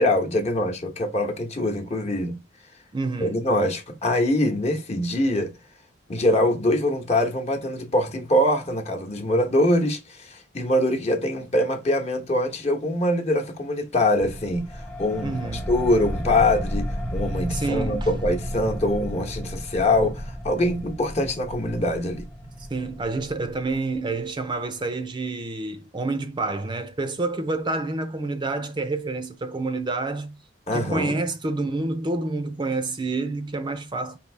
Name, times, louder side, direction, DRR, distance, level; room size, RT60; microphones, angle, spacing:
voice 1, 0.0-2.4 3.2-5.5 6.1-16.9 17.1-22.2 30.7-31.2, left 1 dB, 35° left, 0.9 m, -23 dB
voice 2, 2.9-3.4 15.2-15.7 17.5-18.1 22.6-30.4 30.7-34.2, right 3 dB, 25° right, 0.5 m, -28 dB
sound 1, 14.2-24.4, equal, 5° left, 0.7 m, -33 dB
5.2 x 2.7 x 3.2 m
head